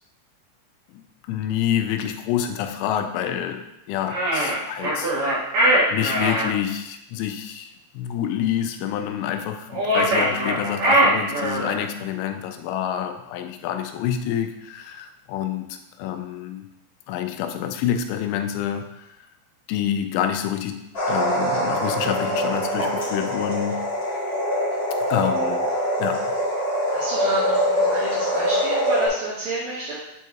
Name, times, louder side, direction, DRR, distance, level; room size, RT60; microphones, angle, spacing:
voice 1, 1.3-5.1 5.6-16.6 17.1-19.1 19.7-20.8 21.1-23.8 25.1-25.7 26.0-26.2, left 10 dB, 90° left, 6 dB, 3.1 m, -27 dB
sound 1, 4.1-6.5 9.7-11.9, right 1 dB, 60° right, 2.4 m, -21 dB
sound 2, 20.9-29.1, equal, 40° left, 1.8 m, -24 dB
voice 2, 26.9-30.0, right 2 dB, 75° right, -7 dB, 2.1 m, -30 dB
7.1 x 4.6 x 2.9 m, 0.86 s
omnidirectional pair, 5.5 m